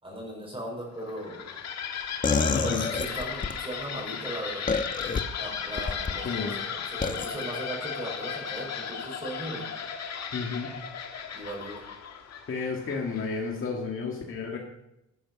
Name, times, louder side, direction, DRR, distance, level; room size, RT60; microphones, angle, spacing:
voice 1, 0.0-1.7 2.6-4.7 5.4-9.7 11.3-11.9, right 1 dB, 20° right, -3 dB, 5.6 m, -38 dB
sound 1, 1.0-13.5, left 7 dB, 60° left, 1.7 m, -36 dB
sound 2, 2.2-3.6 4.7-5.2 5.8-6.2 7.0-7.3, left 4 dB, 25° left, 1.0 m, -27 dB
voice 2, 2.5-2.8 6.2-6.6 10.3-10.7 12.5-14.6, left 4 dB, 45° left, 0 dB, 1.9 m, -32 dB
12.0 x 8.8 x 6.1 m, 0.87 s
cardioid pair, 90°, 30 cm